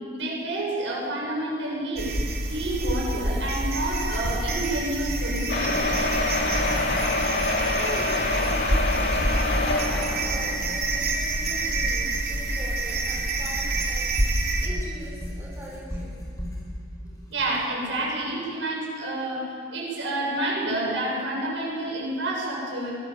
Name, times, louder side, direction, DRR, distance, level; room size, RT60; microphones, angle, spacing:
voice 1, 0.1-2.1 2.5-5.9 17.3-23.0, right 1 dB, 80° right, -3 dB, 7.4 m, -29 dB
sound 1, 2.0-14.7, right 2 dB, 50° right, 3.3 m, -27 dB
Writing, 3.4-18.2, left 1 dB, 20° left, 5.1 m, -42 dB
sound 2, 5.5-10.9 11.6-11.7 12.0-12.1 12.4-12.5, left 2 dB, 60° left, 2.8 m, -26 dB
voice 2, 7.7-16.1 17.0-17.1, equal, 15° right, -5 dB, 5.6 m, -41 dB
23.5 x 19.5 x 7.4 m, 2.1 s
head